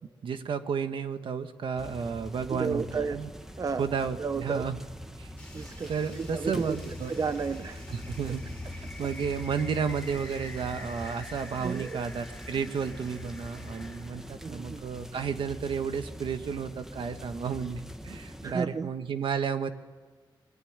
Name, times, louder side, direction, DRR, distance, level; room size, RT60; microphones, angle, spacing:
voice 1, 0.2-3.3 3.8-4.8 5.2-5.3 5.9-7.1 7.9-19.7, right 6 dB, 80° right, 8 dB, 1.5 m, -32 dB
sound 1, 1.8-18.5, equal, 5° right, 1.4 m, -43 dB
voice 2, 2.5-3.2 3.6-3.9 4.2-4.6 5.5-6.8 7.1-7.8 11.1-11.2 11.6-12.0 14.4-14.8 18.4-18.9, right 5 dB, 45° right, 11 dB, 0.8 m, -32 dB
sound 2, 5.4-14.3, left 2 dB, 15° left, 3.3 m, -48 dB
25.0 x 22.5 x 8.9 m, 1.5 s
wide cardioid pair, 160°, 9 cm